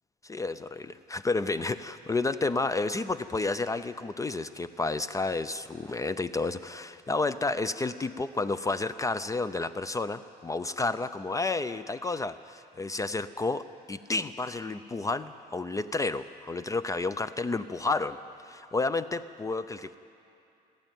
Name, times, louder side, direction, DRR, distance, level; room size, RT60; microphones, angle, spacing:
voice 1, 0.2-18.2 18.4-20.0, left 3 dB, 20° left, 14 dB, 0.5 m, -31 dB
27.5 x 11.5 x 9.1 m, 2.6 s
cardioid pair, 110°, 17 cm